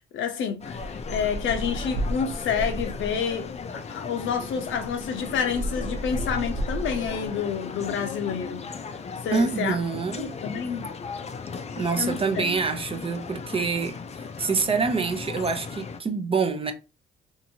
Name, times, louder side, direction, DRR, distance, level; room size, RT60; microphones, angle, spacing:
voice 1, 0.1-3.5 3.9-8.7 9.2-9.8 10.2-10.9 12.0-12.4, left 7 dB, 75° left, 0.7 m, -29 dB
sound 1, 0.6-16.0, left 5 dB, 35° left, 0.4 m, -37 dB
sound 2, 0.7-3.3 4.3-4.4 4.6-7.3, right 1 dB, 55° right, 0.7 m, -33 dB
voice 2, 9.3-10.3 11.8-14.0 14.4-16.7, right 4 dB, 30° right, 0.5 m, -26 dB
2.8 x 2.6 x 2.7 m
cardioid pair, 90°, 20 cm